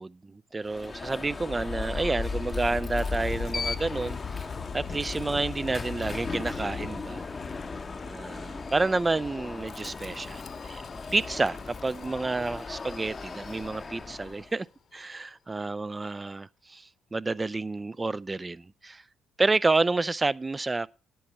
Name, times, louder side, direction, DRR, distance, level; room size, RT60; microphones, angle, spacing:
voice 1, 0.0-4.5 4.7-7.2 8.1-10.8 11.1-14.7 14.9-19.0 19.4-20.9, right 3 dB, 20° right, 0.4 m, -29 dB
Alarm, 0.6-14.5, left 4 dB, 30° left, 0.7 m, -39 dB
Wind, 1.2-14.2, left 5 dB, 45° left, 1.0 m, -39 dB
10.5 x 7.7 x 4.2 m
figure-of-eight pair, 45°, 0 cm